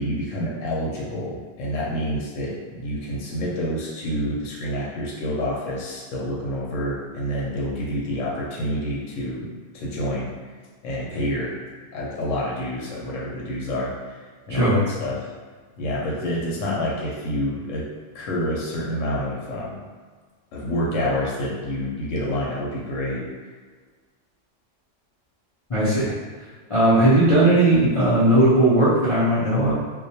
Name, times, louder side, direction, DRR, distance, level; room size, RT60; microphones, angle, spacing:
voice 1, 0.0-9.5 9.7-10.3 10.8-11.5 11.9-13.9 14.5-14.7 15.0-15.2 15.8-17.8 18.1-19.8 20.5-23.2, equal, 85° left, -4 dB, 1.0 m, -28 dB
voice 2, 25.7-26.1 26.7-29.8, right 1 dB, 55° left, -12 dB, 0.3 m, -17 dB
2.2 x 2.2 x 2.7 m, 1.5 s
omnidirectional pair, 1.3 m